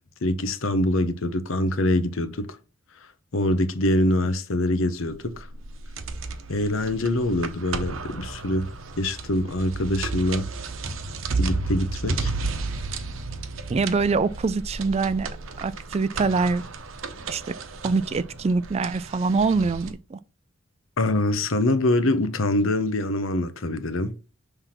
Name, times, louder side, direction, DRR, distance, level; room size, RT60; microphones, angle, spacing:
voice 1, 0.2-2.5 3.3-5.5 6.5-8.7 9.0-10.5 11.4-12.3 21.0-24.1, left 1 dB, 85° left, 0.8 m, -24 dB
sound 1, 5.1-19.9, right 3 dB, 80° right, 0.8 m, -33 dB
voice 2, 13.7-15.3 15.6-16.6 17.3-17.5 17.8-20.2, right 4 dB, 30° right, 0.4 m, -24 dB
5.8 x 3.4 x 5.8 m
head